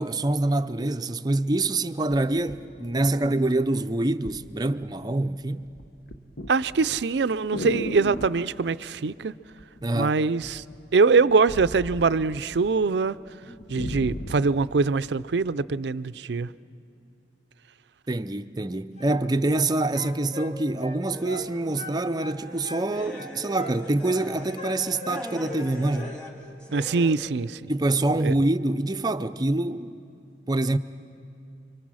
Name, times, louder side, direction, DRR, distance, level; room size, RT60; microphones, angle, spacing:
voice 1, 0.0-5.7 9.8-10.2 18.1-26.2 27.7-29.9 30.5-30.8, right 2 dB, 20° right, 0.5 m, -25 dB
sound 1, 2.1-3.6 4.2-4.5 4.8-5.3 5.6-8.5 9.6-10.1 10.4-12.7 13.0-13.1 13.4-14.6 15.2-15.3, left 1 dB, 55° left, 1.0 m, -36 dB
voice 2, 6.5-9.3 9.9-10.6 10.9-13.2 13.7-16.5 26.7-27.7 28.2-28.3, right 4 dB, 70° right, 0.5 m, -23 dB
sound 2, 19.0-19.7 19.9-21.5 21.8-22.9 23.2-24.2 24.6-25.7 25.9-26.2, left 1 dB, 40° left, 1.8 m, -40 dB
sound 3, 21.1-27.1, equal, 5° left, 2.3 m, -41 dB
30.0 x 24.0 x 6.3 m
head